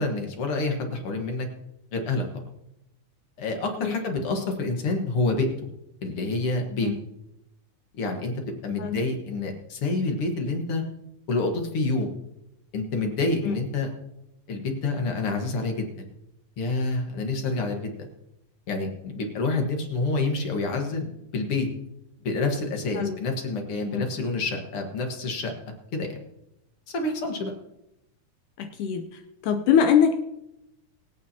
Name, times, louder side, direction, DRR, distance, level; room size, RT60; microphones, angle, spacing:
voice 1, 0.0-1.5 1.9-2.3 3.4-5.5 6.0-6.9 8.0-8.3 8.6-10.8 11.3-12.1 12.7-13.9 14.5-16.0 16.6-18.1 18.7-21.7 22.2-25.5 25.9-26.2 26.9-27.5, left 3 dB, 50° left, 3 dB, 2.0 m, -27 dB
voice 2, 28.6-29.0 29.4-30.1, left 7 dB, 75° left, 6 dB, 2.2 m, -23 dB
23.5 x 8.7 x 2.8 m, 0.85 s
omnidirectional pair, 3.7 m